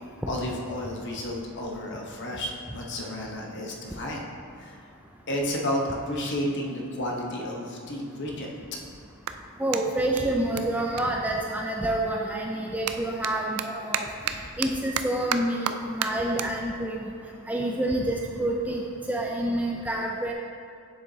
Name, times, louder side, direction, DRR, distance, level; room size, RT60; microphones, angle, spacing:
voice 1, 0.3-4.2 4.6-4.8 5.3-8.5, left 1 dB, 50° left, -1 dB, 0.9 m, -31 dB
Clapping, 9.2-12.0 12.3-18.9, right 9 dB, 85° right, 0.4 m, -35 dB
voice 2, 9.6-17.1 17.5-20.3, right 1 dB, 5° right, -1 dB, 0.3 m, -28 dB
7.1 x 6.9 x 2.7 m, 2.5 s
head